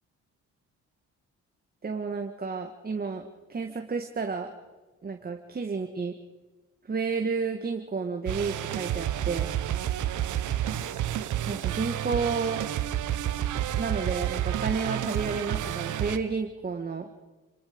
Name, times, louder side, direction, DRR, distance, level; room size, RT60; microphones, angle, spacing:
voice 1, 1.8-3.2 3.5-4.5 5.0-6.1 6.8-9.5 11.5-12.7 13.7-17.1, right 5 dB, 30° right, 4 dB, 1.7 m, -31 dB
sound 1, 8.3-16.2, right 11 dB, 75° right, 1.2 m, -30 dB
28.5 x 19.0 x 5.3 m, 1.2 s
cardioid pair, 90°, 30 cm